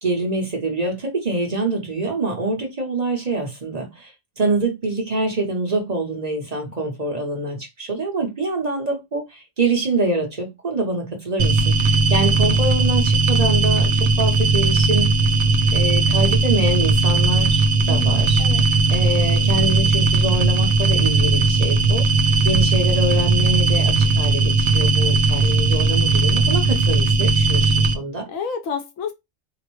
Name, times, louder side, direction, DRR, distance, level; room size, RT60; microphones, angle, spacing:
voice 1, 0.0-15.2 15.7-17.6 17.9-18.4 18.9-28.2, right 2 dB, 35° right, 0.8 m, -25 dB
sound 1, 11.4-28.0, right 3 dB, 70° right, 0.8 m, -18 dB
voice 2, 17.8-18.7 28.3-29.1, left 5 dB, 90° left, 1.1 m, -30 dB
3.9 x 2.1 x 3.0 m
omnidirectional pair, 1.3 m